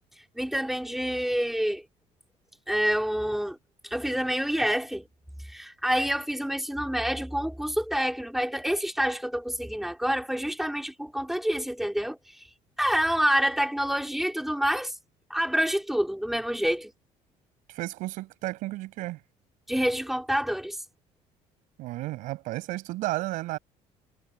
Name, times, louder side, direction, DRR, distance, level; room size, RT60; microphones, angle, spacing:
voice 1, 0.3-1.8 2.7-3.6 3.8-5.1 5.4-12.2 12.8-14.9 15.3-16.9 19.7-20.8, equal, ahead, 4.8 m, -27 dB
voice 2, 17.7-19.2 21.8-23.6, right 18 dB, 80° right, 7.4 m, -33 dB
cardioid pair, 110°, 13 cm